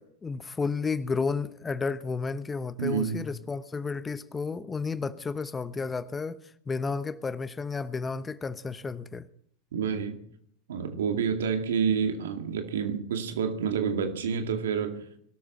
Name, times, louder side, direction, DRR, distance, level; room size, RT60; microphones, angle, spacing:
voice 1, 0.0-9.3, left 4 dB, 20° left, 1.0 m, -32 dB
voice 2, 2.8-3.2 9.7-10.2 10.7-15.1, right 6 dB, 75° right, 2.3 m, -28 dB
22.5 x 13.0 x 4.3 m
hypercardioid pair, 90°, 0 cm